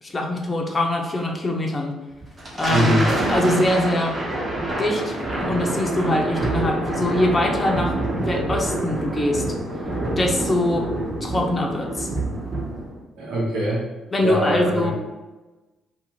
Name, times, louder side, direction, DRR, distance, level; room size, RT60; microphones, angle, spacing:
voice 1, 0.0-2.0 2.5-3.0 3.3-4.2 4.8-5.2 5.5-9.4 10.1-10.9 11.2-12.1 14.1-14.9, left 1 dB, 30° left, 1 dB, 0.6 m, -23 dB
Thunder, 2.2-13.0, right 1 dB, 40° right, 1.0 m, -26 dB
voice 2, 2.7-3.1 13.2-13.8 14.2-14.9, right 1 dB, 70° right, -5 dB, 1.0 m, -22 dB
2.6 x 2.4 x 2.9 m, 1.2 s
hypercardioid pair, 55°, 0 cm